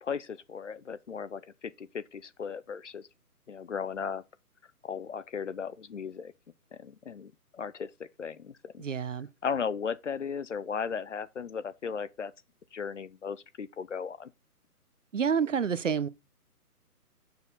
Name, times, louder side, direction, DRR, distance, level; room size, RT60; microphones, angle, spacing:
voice 1, 0.0-3.1 3.5-4.2 4.8-6.3 6.7-8.8 9.4-12.3 12.7-14.3, left 6 dB, 50° left, 0.7 m, -36 dB
voice 2, 8.8-9.3 15.1-16.1, right 7 dB, 55° right, 0.8 m, -28 dB
7.0 x 6.6 x 3.9 m
figure-of-eight pair, 140°, 46 cm